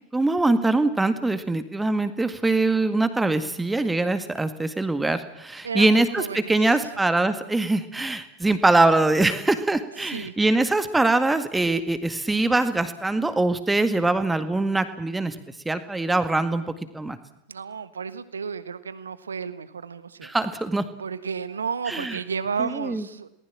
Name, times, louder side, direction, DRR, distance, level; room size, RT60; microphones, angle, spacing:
voice 1, 0.1-15.4 15.7-16.6 16.9-17.2 20.2-20.8 21.9-22.2 22.6-23.1, right 2 dB, 10° right, 10 dB, 1.9 m, -23 dB
voice 2, 5.6-6.6 10.0-10.4 17.5-20.3 21.0-23.3, right 6 dB, 70° right, 14 dB, 1.4 m, -32 dB
28.0 x 19.5 x 7.4 m, 0.84 s
figure-of-eight pair, 90°, 0 cm